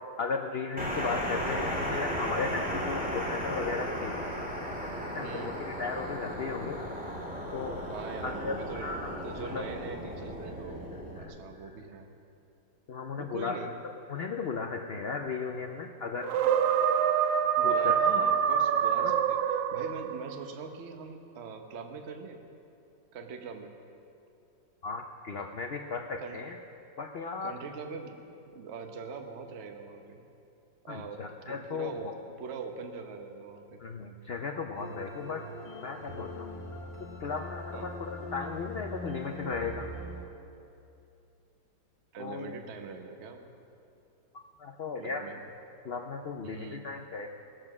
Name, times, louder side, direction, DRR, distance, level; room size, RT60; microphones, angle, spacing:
voice 1, 0.2-4.2 5.0-6.8 7.5-7.8 8.2-9.6 11.2-11.3 12.9-13.6 14.1-16.3 17.6-18.0 19.0-19.1 24.8-26.6 27.0-27.5 30.9-32.1 33.8-35.4 35.7-36.5 37.2-39.9 42.2-42.6 44.3-45.2 45.8-47.3, left 5 dB, 75° left, 4 dB, 0.5 m, -36 dB
sound 1, 0.8-11.2, equal, 5° right, 1.9 m, -35 dB
voice 2, 5.2-5.5 7.9-8.9 9.2-12.1 13.2-13.7 17.6-22.4 23.1-23.7 26.2-26.4 27.4-28.2 28.5-30.2 30.8-33.8 37.7-37.9 42.1-43.4 45.0-45.4 46.4-46.8, right 5 dB, 45° right, 5 dB, 1.0 m, -42 dB
sound 2, 16.2-20.3, right 8 dB, 70° right, 1.0 m, -25 dB
sound 3, 34.7-40.2, left 1 dB, 20° left, 1.0 m, -41 dB
19.5 x 7.7 x 6.0 m, 2.7 s
omnidirectional pair, 1.9 m